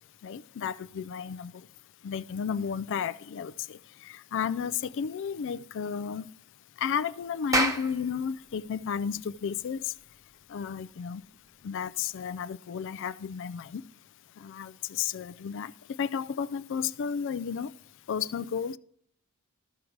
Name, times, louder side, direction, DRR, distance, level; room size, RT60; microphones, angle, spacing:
voice 1, 0.2-1.5 2.0-3.8 4.1-6.2 6.8-9.8 10.5-11.2 11.6-13.8 14.4-15.7 16.0-17.7 18.1-18.8, left 7 dB, 55° left, 0.4 m, -32 dB
Clapping, 7.3-12.2, right 1 dB, 15° right, 0.9 m, -33 dB
13.5 x 4.6 x 6.4 m
head